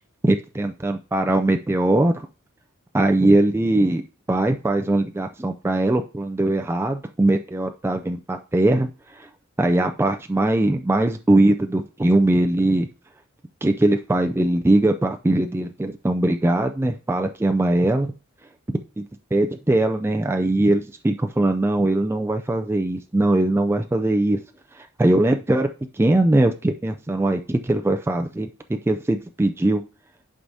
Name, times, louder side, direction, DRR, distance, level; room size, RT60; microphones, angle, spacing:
voice 1, 0.2-2.3 2.9-4.0 4.3-9.3 9.6-12.9 13.6-18.1 19.0-19.1 19.3-24.4 24.7-28.5 28.9-29.8, right 1 dB, 10° right, 5 dB, 0.3 m, -21 dB
11.0 x 4.7 x 2.7 m, 0.35 s
head